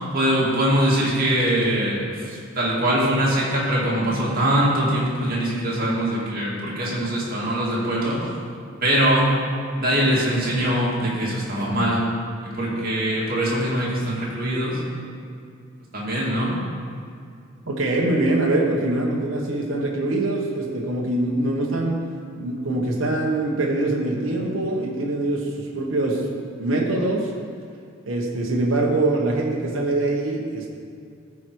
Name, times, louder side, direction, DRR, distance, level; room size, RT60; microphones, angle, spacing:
voice 1, 0.1-8.2 8.8-9.3 9.8-12.1 12.4-14.8 15.9-16.5, right 1 dB, 45° right, -5 dB, 2.2 m, -22 dB
voice 2, 17.7-22.0 22.4-26.2 26.6-27.3 28.1-30.8, right 2 dB, 65° right, -2 dB, 1.1 m, -23 dB
14.5 x 4.8 x 4.7 m, 2.3 s
head